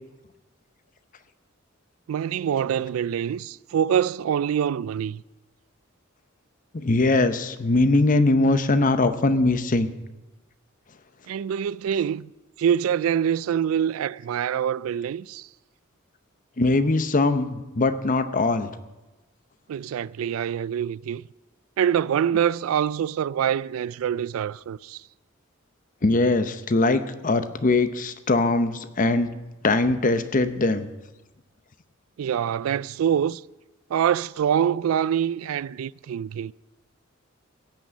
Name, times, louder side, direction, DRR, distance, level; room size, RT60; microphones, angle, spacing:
voice 1, 2.1-5.2 11.3-12.3 12.6-15.5 19.7-21.2 21.8-25.0 32.2-33.4 33.9-36.5, right 8 dB, 90° right, 0.3 m, -25 dB
voice 2, 6.7-9.9 16.6-18.7 26.0-29.3 29.6-30.9, left 2 dB, 40° left, 0.8 m, -21 dB
16.5 x 6.1 x 8.3 m
head